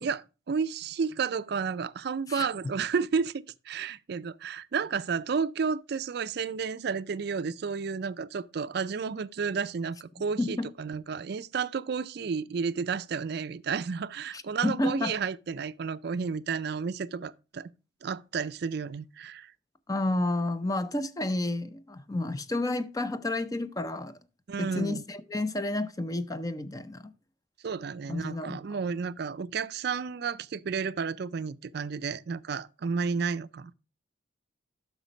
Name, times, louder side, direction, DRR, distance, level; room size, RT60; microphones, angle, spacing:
voice 1, 0.0-3.3 3.7-17.7 18.0-19.5 24.5-25.0 27.6-33.7, right 5 dB, 55° right, 0.4 m, -32 dB
voice 2, 10.4-10.7 14.3-15.2 19.9-24.2 24.6-27.1 28.1-28.6, left 2 dB, 20° left, 0.5 m, -31 dB
8.1 x 6.0 x 5.0 m
head